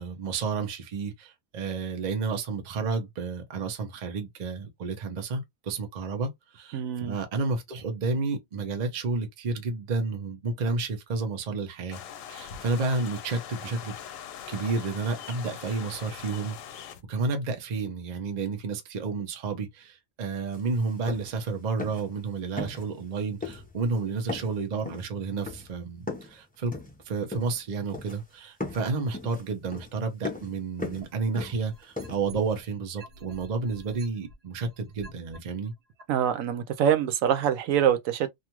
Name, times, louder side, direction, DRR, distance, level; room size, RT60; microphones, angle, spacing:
voice 1, 0.0-12.0 12.3-13.9 14.5-26.8 27.0-35.7, right 4 dB, 40° right, 0.7 m, -31 dB
voice 2, 6.7-7.2 36.1-38.3, right 9 dB, 85° right, 1.0 m, -25 dB
sound 1, 11.9-17.0, left 9 dB, 75° left, 0.9 m, -42 dB
sound 2, 20.5-20.6 20.9-21.5 21.8-22.2 22.6-23.1 23.4-24.0 24.3-26.4 26.7-27.7 27.9-28.3 28.6-32.6, left 2 dB, 10° left, 0.4 m, -38 dB
sound 3, 31.0-32.6 33.0-35.4 36.0-36.1, right 1 dB, 65° right, 1.2 m, -47 dB
2.6 x 2.4 x 2.9 m
omnidirectional pair, 1.4 m